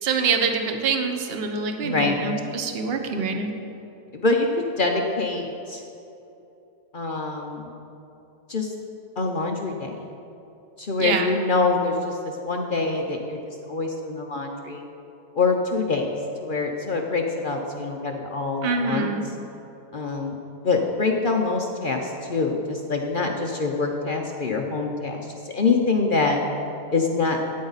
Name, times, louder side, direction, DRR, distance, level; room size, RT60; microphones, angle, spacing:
voice 1, 0.0-3.5 11.0-11.3 18.6-19.3, right 5 dB, 45° right, 5 dB, 0.9 m, -25 dB
voice 2, 1.8-2.2 4.1-5.8 6.9-7.7 8.5-8.7 9.2-10.0 10.8-13.4 13.7-14.8 15.3-16.1 16.4-19.1 19.9-20.4 20.6-26.4 26.9-27.4, left 3 dB, 55° left, 1 dB, 0.5 m, -25 dB
13.0 x 9.6 x 4.1 m, 2.8 s
omnidirectional pair, 1.9 m